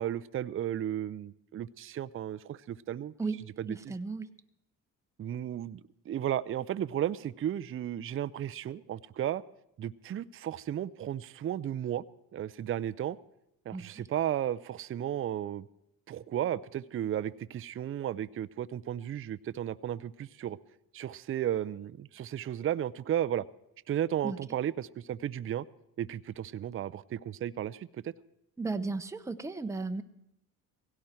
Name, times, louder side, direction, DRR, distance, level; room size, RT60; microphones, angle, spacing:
voice 1, 0.0-3.1 3.4-3.9 5.2-5.8 6.1-9.4 9.8-12.0 12.3-13.2 13.7-15.7 16.1-20.6 20.9-23.4 23.9-25.6 26.0-28.1, right 11 dB, 35° right, 15 dB, 0.5 m, -34 dB
voice 2, 3.7-4.3 13.7-13.9 24.2-24.4 28.6-30.0, right 3 dB, 10° right, 8 dB, 0.8 m, -34 dB
17.0 x 16.5 x 4.4 m, 0.81 s
supercardioid pair, 70°, 38 cm